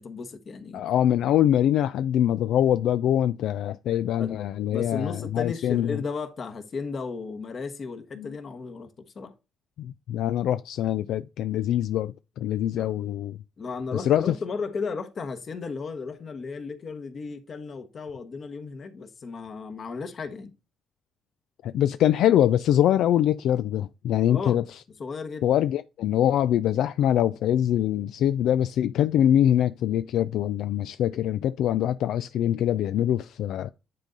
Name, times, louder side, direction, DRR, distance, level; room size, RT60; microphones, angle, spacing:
voice 1, 0.0-0.9 4.2-4.4 4.7-9.3 12.8-12.9 13.6-20.5 24.3-24.6 25.0-25.5, left 4 dB, 50° left, 1.2 m, -35 dB
voice 2, 0.7-6.0 8.2-8.3 9.8-13.4 13.9-14.3 21.6-24.6 25.4-33.7, left 11 dB, 80° left, 0.3 m, -24 dB
10.0 x 3.8 x 3.9 m
cardioid pair, 90°, 0 cm